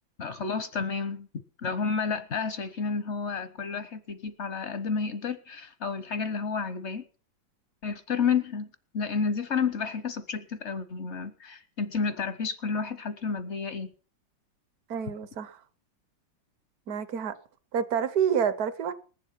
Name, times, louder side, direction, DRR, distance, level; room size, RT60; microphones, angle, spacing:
voice 1, 0.2-1.3 1.6-7.0 7.8-8.7 8.9-13.9, left 5 dB, 60° left, 0.7 m, -31 dB
voice 2, 14.9-15.6 16.9-17.3 17.7-18.9, right 8 dB, 60° right, 1.1 m, -28 dB
20.0 x 7.5 x 5.8 m
omnidirectional pair, 2.1 m